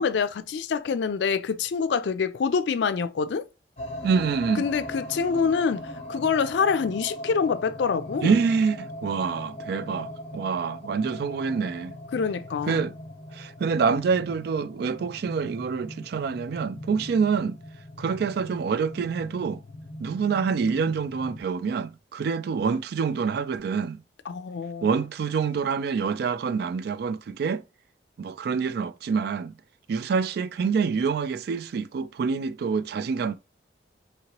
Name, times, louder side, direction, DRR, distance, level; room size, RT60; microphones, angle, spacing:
voice 1, 0.0-3.5 4.6-8.4 12.1-12.8 24.3-24.9, left 5 dB, 80° left, 0.4 m, -26 dB
sound 1, 3.8-21.4, left 1 dB, 35° left, 0.9 m, -40 dB
voice 2, 4.0-4.6 8.2-11.9 12.7-12.9 13.3-17.6 18.0-19.6 20.0-24.0 24.8-27.6 28.2-29.5 29.9-33.4, right 5 dB, 60° right, 0.3 m, -26 dB
2.9 x 2.8 x 2.9 m
head